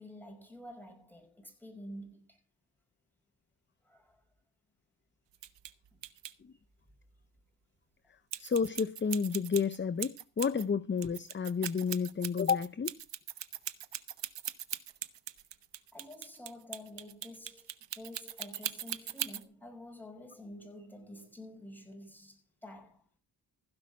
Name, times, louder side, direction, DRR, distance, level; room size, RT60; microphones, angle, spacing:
voice 1, 0.0-2.4 3.8-4.2 5.9-6.0 15.9-23.1, left 1 dB, 5° left, 5.3 m, -49 dB
sound 1, 5.3-5.7 6.0-6.3 8.3-10.6 11.0-19.4, right 11 dB, 75° right, 0.9 m, -39 dB
voice 2, 8.1-13.0, left 6 dB, 25° left, 0.6 m, -31 dB
16.0 x 5.8 x 6.2 m
cardioid pair, 70°, 43 cm